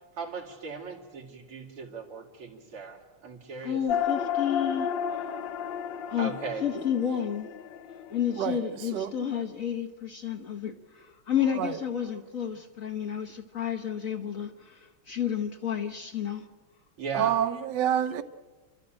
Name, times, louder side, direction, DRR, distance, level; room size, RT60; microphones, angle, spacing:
voice 1, 0.2-3.8 6.2-6.7 17.0-17.4, right 4 dB, 90° right, 3.6 m, -38 dB
voice 2, 3.6-5.3 6.1-6.3 6.6-7.5 8.1-16.5 17.1-17.3, left 9 dB, 45° left, 1.3 m, -31 dB
sound 1, 3.9-8.7, left 8 dB, 65° left, 1.4 m, -32 dB
voice 3, 8.3-9.1 11.5-11.8 17.1-18.2, right 10 dB, 60° right, 1.4 m, -28 dB
29.0 x 13.0 x 8.9 m
omnidirectional pair, 2.3 m